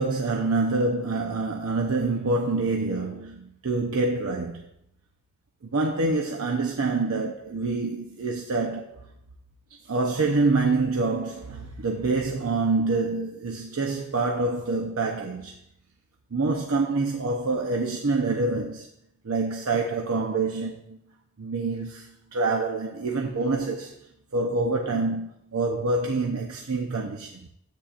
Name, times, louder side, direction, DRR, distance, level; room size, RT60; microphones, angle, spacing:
voice 1, 0.0-4.7 5.6-9.0 9.8-15.6 16.3-18.9 19.2-21.0 21.4-23.9 24.3-27.5, right 3 dB, 85° right, 0.8 m, -26 dB
13.0 x 8.5 x 2.5 m
head